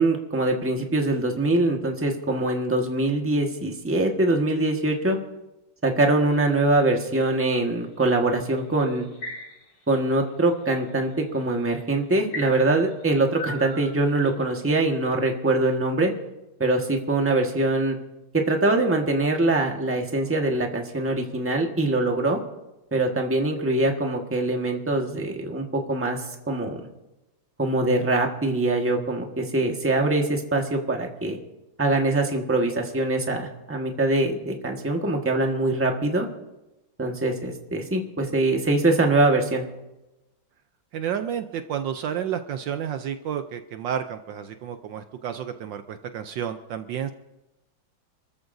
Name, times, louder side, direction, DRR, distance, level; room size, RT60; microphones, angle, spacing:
voice 1, 0.0-5.2 5.8-9.1 9.9-16.1 16.6-18.0 18.3-22.4 22.9-26.8 27.6-31.4 31.8-36.3 37.0-39.6, right 2 dB, 10° right, 2 dB, 1.2 m, -23 dB
sound 1, 6.3-7.6 8.6-9.8 10.3-10.8 11.5-11.6 12.3-14.5, left 1 dB, 50° left, 2.7 m, -38 dB
voice 2, 40.9-47.1, right 9 dB, 70° right, 8 dB, 1.3 m, -31 dB
28.0 x 14.0 x 2.7 m, 0.99 s
omnidirectional pair, 2.2 m